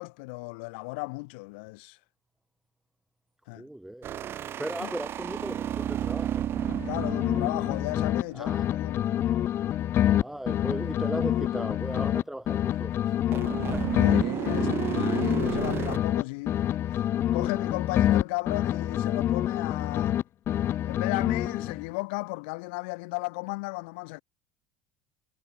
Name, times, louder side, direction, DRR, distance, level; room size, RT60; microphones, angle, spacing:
voice 1, 0.0-2.0 3.5-3.7 4.8-4.9 6.8-9.2 14.0-16.6 17.3-20.2 20.9-24.2, left 28 dB, 80° left, 1.8 m, -35 dB
voice 2, 3.5-4.1 4.6-6.5 8.3-8.7 10.1-13.9, right 1 dB, 5° right, 6.2 m, -37 dB
sound 1, 4.0-8.6 13.3-16.0, right 10 dB, 40° right, 2.9 m, -32 dB
sound 2, 6.6-8.2 8.5-12.2 12.5-16.2 16.5-20.2 20.5-21.9, left 11 dB, 45° left, 0.8 m, -27 dB
supercardioid pair, 115°, 6 cm